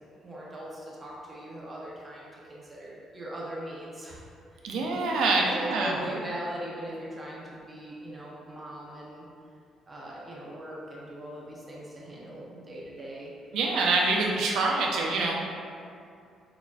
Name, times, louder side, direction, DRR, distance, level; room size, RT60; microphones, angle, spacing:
voice 1, 0.2-4.7 5.2-9.3 9.9-13.3, right 1 dB, 20° right, -6 dB, 0.7 m, -40 dB
voice 2, 4.6-6.0 13.5-15.3, right 3 dB, 80° right, -1 dB, 0.5 m, -25 dB
5.9 x 2.6 x 2.4 m, 2.4 s
cardioid pair, 165°, 0 cm